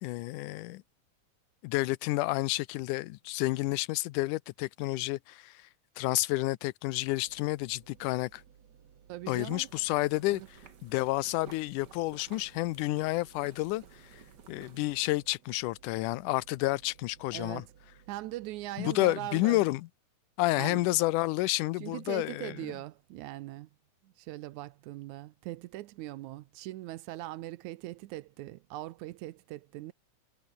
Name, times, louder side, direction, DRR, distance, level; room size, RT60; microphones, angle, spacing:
voice 1, 0.0-0.8 1.6-5.6 6.0-8.4 9.3-10.4 10.8-13.8 14.5-17.6 18.8-19.9 20.4-22.5, left 19 dB, 85° left, 2.2 m, -30 dB
sound 1, 7.0-19.0, right 8 dB, 60° right, 3.3 m, -60 dB
voice 2, 9.1-9.7 10.3-10.5 17.3-17.7 18.1-19.6 20.6-20.9 21.8-23.7 24.0-29.9, right 16 dB, 80° right, 2.0 m, -41 dB
sound 2, 9.3-15.2, right 6 dB, 40° right, 2.2 m, -55 dB
omnidirectional pair, 3.6 m